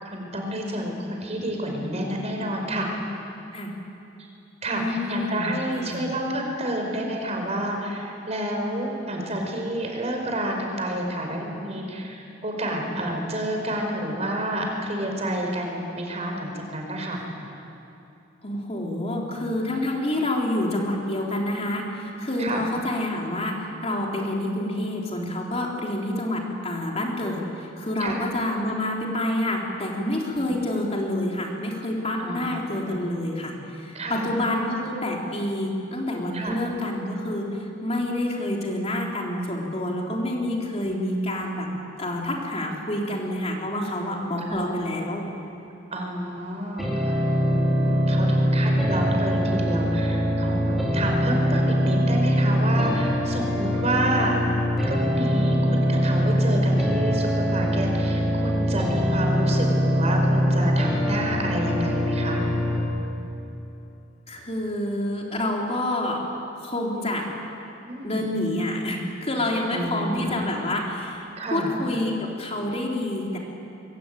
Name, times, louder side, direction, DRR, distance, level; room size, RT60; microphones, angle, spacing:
voice 1, 0.0-2.9 4.6-17.2 22.4-22.6 28.0-28.2 30.3-30.6 32.2-33.0 33.9-34.3 36.3-36.6 40.8-40.9 44.5-44.7 45.9-54.4 54.8-62.4 67.9-68.2 69.7-70.4 71.4-71.7, right 1 dB, 35° right, 1 dB, 5.3 m, -29 dB
voice 2, 4.7-6.1 18.4-41.7 42.0-45.3 64.3-66.2 66.6-67.3 68.0-71.2 71.5-73.4, left 1 dB, 35° left, -1 dB, 3.6 m, -28 dB
sound 1, 46.8-62.8, equal, ahead, 4.8 m, -23 dB
23.5 x 23.0 x 9.2 m, 2.8 s
head